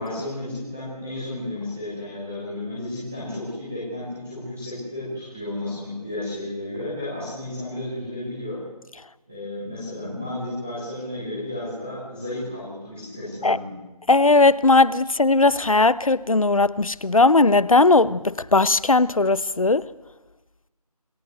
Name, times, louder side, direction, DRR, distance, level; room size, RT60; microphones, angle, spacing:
voice 1, 0.0-8.6 9.3-13.8, left 1 dB, 5° right, 0.9 m, -32 dB
voice 2, 14.1-19.9, left 3 dB, 60° left, 0.9 m, -18 dB
26.5 x 15.0 x 7.9 m
figure-of-eight pair, 175°, 20 cm